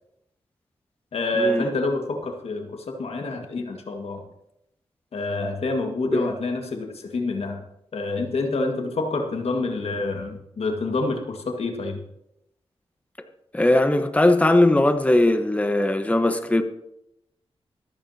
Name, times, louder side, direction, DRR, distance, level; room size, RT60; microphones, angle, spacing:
voice 1, 1.1-4.2 5.1-7.6 7.9-12.0, left 2 dB, 75° left, 3 dB, 1.8 m, -27 dB
voice 2, 13.5-16.6, left 1 dB, 15° left, 7 dB, 1.1 m, -19 dB
24.5 x 8.9 x 2.8 m, 0.80 s
cardioid pair, 60°, 11 cm